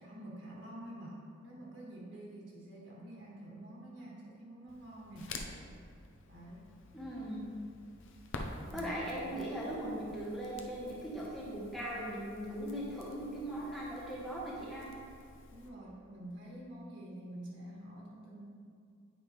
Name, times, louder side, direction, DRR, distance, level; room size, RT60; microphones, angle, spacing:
voice 1, 0.0-5.4 6.3-6.6 8.6-9.1 15.5-18.4, right 1 dB, 60° right, -5 dB, 1.8 m, -48 dB
Crackle, 4.7-15.7, left 2 dB, 60° left, 0.6 m, -49 dB
voice 2, 6.9-7.4 8.7-14.9, right 1 dB, ahead, -7 dB, 1.0 m, -39 dB
8.8 x 5.5 x 3.2 m, 2.4 s
head